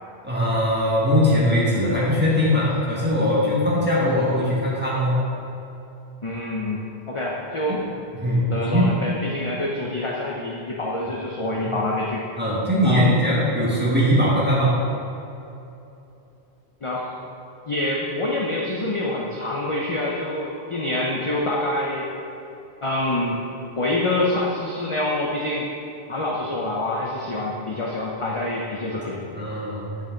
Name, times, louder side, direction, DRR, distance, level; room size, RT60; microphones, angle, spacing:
voice 1, 0.2-5.2 7.7-7.8 8.2-8.9 11.6-11.7 12.4-14.8 29.1-29.9, equal, 10° right, -8 dB, 1.8 m, -21 dB
voice 2, 6.2-7.8 8.5-12.2 12.8-13.2 16.8-17.1 17.7-22.1 22.8-23.4 23.8-25.7 26.1-29.2, left 1 dB, 35° left, -4 dB, 0.7 m, -26 dB
7.9 x 6.9 x 3.9 m, 2.8 s
omnidirectional pair, 1.1 m